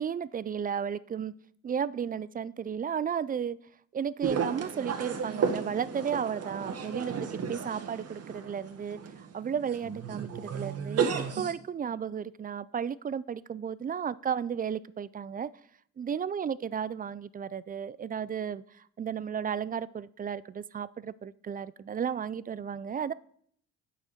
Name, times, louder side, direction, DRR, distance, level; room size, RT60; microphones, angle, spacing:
voice 1, 0.0-1.3 1.6-3.6 3.9-7.1 7.5-11.1 11.4-15.5 16.0-23.1, right 7 dB, 30° right, 19 dB, 0.4 m, -34 dB
sound 1, 4.2-11.5, right 6 dB, 55° right, 1.3 m, -33 dB
7.9 x 5.8 x 6.6 m, 0.63 s
cardioid pair, 90°, 30 cm